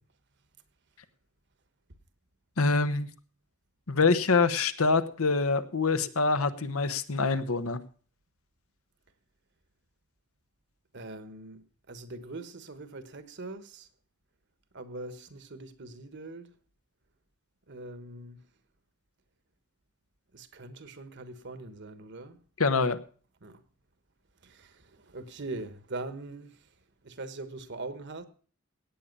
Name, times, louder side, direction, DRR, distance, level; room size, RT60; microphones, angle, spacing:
voice 1, 2.6-3.1 3.9-7.8 22.6-23.0, left 4 dB, 80° left, 1.1 m, -25 dB
voice 2, 10.9-13.9 14.7-16.5 17.7-18.4 20.3-22.4 23.4-23.6 24.4-26.7 27.0-28.2, right 2 dB, 55° right, 1.3 m, -42 dB
17.0 x 8.9 x 5.3 m
head